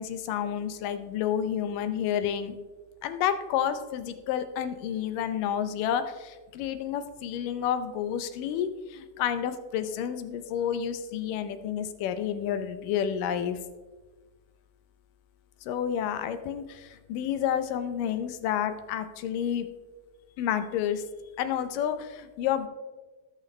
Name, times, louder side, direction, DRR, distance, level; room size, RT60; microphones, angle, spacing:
voice 1, 0.0-2.6 3.0-13.6 15.6-19.7 20.4-21.0 21.4-22.7, left 9 dB, 85° left, 10 dB, 2.3 m, -30 dB
19.0 x 6.5 x 3.2 m, 1.3 s
omnidirectional pair, 3.8 m